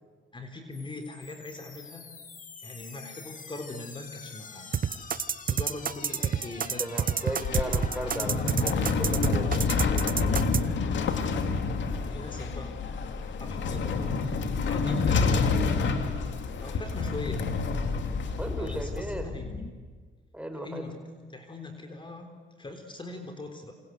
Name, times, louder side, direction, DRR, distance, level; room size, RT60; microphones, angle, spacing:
voice 1, 0.3-2.1 2.6-6.9 10.8-11.2 12.1-12.8 13.4-14.3 14.7-15.8 16.3-17.4 18.6-19.5 20.6-21.0 21.3-23.7, left 2 dB, 25° left, 5 dB, 3.7 m, -41 dB
sound 1, 0.7-19.7, left 4 dB, 40° left, 2.6 m, -39 dB
sound 2, 4.7-10.6, right 8 dB, 45° right, 1.0 m, -27 dB
voice 2, 6.8-9.6 18.4-19.3 20.3-20.9, right 1 dB, 5° right, 6 dB, 4.8 m, -35 dB
sound 3, 7.1-19.0, left 4 dB, 70° left, 2.6 m, -28 dB
27.5 x 26.0 x 8.2 m, 1.5 s
cardioid pair, 90°, 20 cm